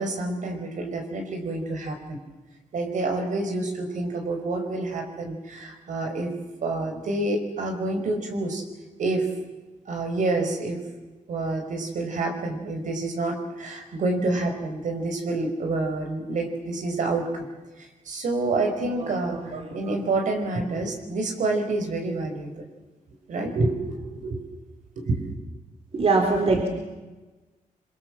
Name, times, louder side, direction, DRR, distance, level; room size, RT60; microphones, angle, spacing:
voice 1, 0.0-2.2 2.7-6.3 6.6-8.6 9.0-9.3 9.9-10.8 11.3-17.4 17.8-22.7 23.3-23.7 24.1-24.4 25.0-25.3, right 2 dB, 70° right, 4 dB, 5.0 m, -28 dB
voice 2, 19.3-19.9 25.9-26.7, right 3 dB, 50° right, 3 dB, 3.9 m, -23 dB
27.0 x 23.0 x 7.6 m, 1.2 s
cardioid pair, 100°, 14 cm